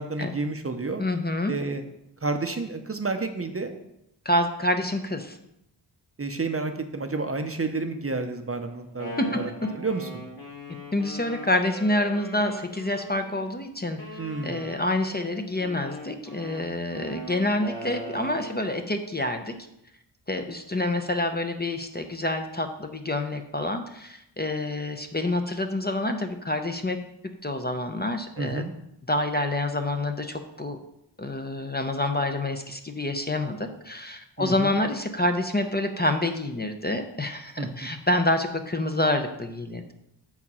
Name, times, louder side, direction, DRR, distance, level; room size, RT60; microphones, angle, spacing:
voice 1, 0.0-1.0 1.5-1.8 2.2-3.7 6.2-9.4 9.8-10.2 14.2-14.6 28.4-28.7 34.4-34.8 37.6-37.7, right 3 dB, 30° right, 7 dB, 0.6 m, -30 dB
voice 2, 1.0-1.6 4.2-5.4 9.2-9.3 10.9-14.0 14.4-19.5 20.3-27.0 27.4-28.6 29.1-30.8 31.2-39.9, left 1 dB, 20° left, 6 dB, 0.6 m, -27 dB
Wind instrument woodwind instrument, 8.7-13.5 14.0-18.7, equal, 50° left, 2.1 m, -40 dB
7.3 x 4.8 x 5.4 m, 0.80 s
wide cardioid pair, 90°, 46 cm